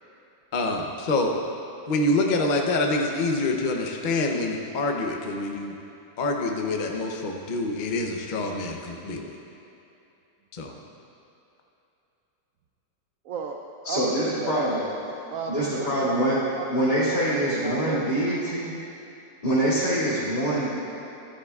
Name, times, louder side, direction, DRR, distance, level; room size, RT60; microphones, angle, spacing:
voice 1, 0.5-1.3 1.9-5.7 6.2-9.3 10.5-10.8, left 2 dB, 65° left, 1 dB, 0.4 m, -26 dB
voice 2, 13.2-13.6 13.8-16.7 17.2-18.2, right 5 dB, 85° right, 1 dB, 0.7 m, -35 dB
voice 3, 13.8-14.8 15.5-16.4 16.7-18.7 19.4-20.7, right 1 dB, 25° left, -13 dB, 2.5 m, -24 dB
14.5 x 10.5 x 2.4 m, 2.9 s
omnidirectional pair, 2.0 m